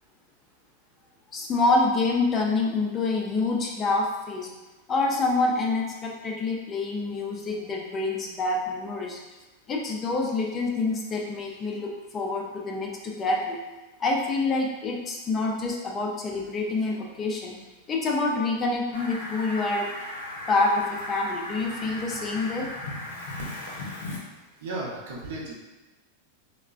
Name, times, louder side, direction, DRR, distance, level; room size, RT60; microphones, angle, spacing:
voice 1, 1.3-4.5 4.9-9.2 9.7-13.6 14.0-17.5 17.9-19.9 20.5-22.7, left 3 dB, 20° left, 0 dB, 0.3 m, -27 dB
Fowl, 18.9-24.2, left 1 dB, 85° left, 0.7 m, -36 dB
voice 2, 24.6-25.5, right 2 dB, 70° right, -4 dB, 0.7 m, -34 dB
3.2 x 2.0 x 2.4 m, 1.1 s
supercardioid pair, 170°, 0 cm